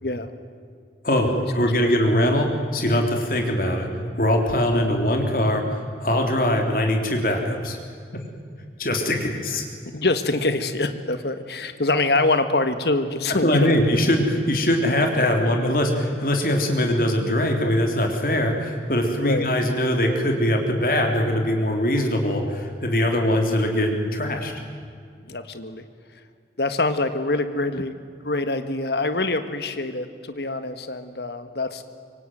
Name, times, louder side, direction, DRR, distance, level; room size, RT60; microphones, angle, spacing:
voice 1, 1.0-3.9 4.2-7.8 8.8-9.7 13.4-24.5, left 1 dB, 50° left, 3 dB, 3.6 m, -22 dB
voice 2, 9.9-13.8 19.2-19.5 25.3-25.8 26.6-27.9 28.2-31.8, left 2 dB, 70° left, 9 dB, 1.7 m, -25 dB
25.5 x 25.0 x 9.3 m, 2.1 s
head